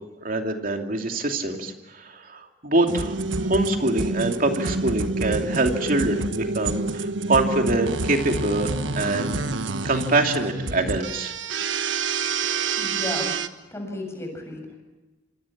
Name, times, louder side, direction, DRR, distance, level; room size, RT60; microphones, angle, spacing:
voice 1, 0.2-9.4 9.8-11.3, right 2 dB, 50° right, 4 dB, 2.8 m, -25 dB
sound 1, 2.9-13.5, right 3 dB, 80° right, 1.3 m, -28 dB
voice 2, 12.8-13.3 13.7-14.8, left 1 dB, 15° left, 2 dB, 7.6 m, -33 dB
26.5 x 25.5 x 7.3 m, 1.1 s
head